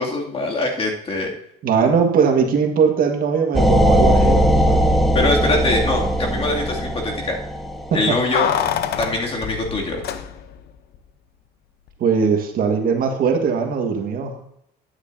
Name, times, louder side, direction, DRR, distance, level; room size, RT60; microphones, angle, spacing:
voice 1, 0.0-1.3 5.1-7.4 7.9-8.5 9.0-10.0, left 2 dB, 35° left, -1 dB, 2.6 m, -23 dB
voice 2, 1.6-5.0 7.9-8.2 12.0-14.3, right 6 dB, 60° right, 3 dB, 1.7 m, -20 dB
sound 1, 3.5-8.3, equal, ahead, 1.3 m, -18 dB
Keys jangling, 8.3-10.7 10.9-11.0, left 9 dB, 70° left, 0.8 m, -25 dB
11.5 x 9.7 x 2.8 m, 0.71 s
cardioid pair, 110°, 17 cm